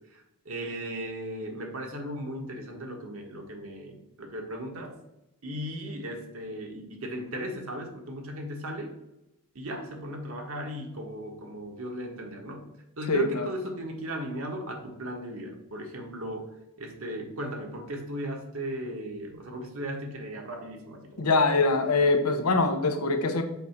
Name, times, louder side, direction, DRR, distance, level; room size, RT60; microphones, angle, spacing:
voice 1, 0.0-5.0 5.4-8.9 9.5-12.7 13.0-16.5 16.8-21.3, right 1 dB, 65° right, 2 dB, 1.3 m, -36 dB
voice 2, 13.1-13.4 21.2-23.4, left 3 dB, 90° left, 6 dB, 0.9 m, -23 dB
7.1 x 2.7 x 5.8 m, 0.90 s
head